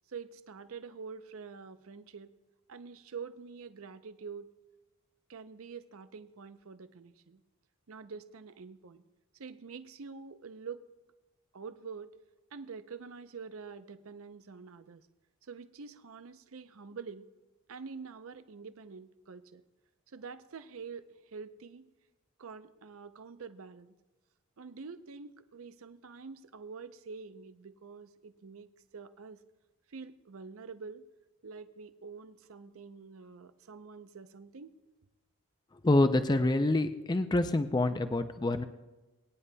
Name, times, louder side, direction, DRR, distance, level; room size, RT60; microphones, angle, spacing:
voice 1, 0.1-2.3 2.7-4.5 5.3-7.4 7.9-9.0 9.3-10.8 11.5-12.1 12.5-15.1 15.4-17.3 17.7-19.6 20.1-21.9 22.4-23.9 24.6-29.4 29.9-31.1 31.4-34.7, right 5 dB, 65° right, 11 dB, 0.6 m, -46 dB
voice 2, 35.8-38.6, left 2 dB, 20° left, 9 dB, 0.4 m, -26 dB
22.0 x 9.7 x 2.2 m, 1.1 s
head